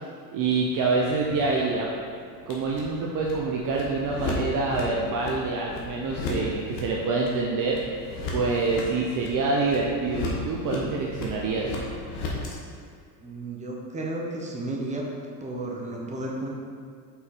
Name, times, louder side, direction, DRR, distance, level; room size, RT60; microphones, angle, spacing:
voice 1, 0.3-1.9 2.5-7.8 8.3-11.7, right 3 dB, 40° right, -2 dB, 0.7 m, -26 dB
sound 1, 0.5-12.5, left 2 dB, 75° left, 1.5 m, -36 dB
voice 2, 13.2-15.0 15.4-16.5, right 2 dB, 15° right, -2 dB, 1.0 m, -33 dB
5.7 x 4.1 x 4.2 m, 2.2 s
supercardioid pair, 100°, 49 cm